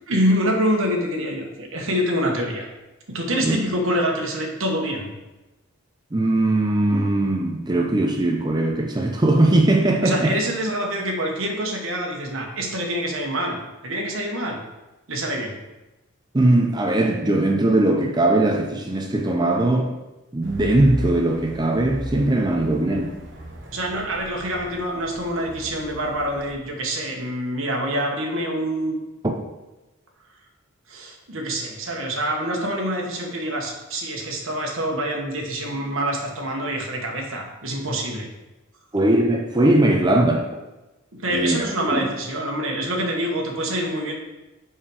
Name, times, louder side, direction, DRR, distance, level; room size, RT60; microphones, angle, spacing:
voice 1, 0.1-2.7 3.1-5.1 10.0-13.6 13.8-14.6 15.1-15.6 23.7-29.1 30.9-38.3 41.1-44.1, equal, 70° right, 0 dB, 1.3 m, -26 dB
voice 2, 6.1-10.3 16.3-19.9 20.3-23.1 38.9-40.5 41.3-42.1, right 1 dB, 20° right, 2 dB, 0.5 m, -20 dB
sound 1, 20.4-26.5, right 1 dB, 55° right, 1.0 m, -36 dB
5.5 x 5.0 x 4.8 m, 1.0 s
head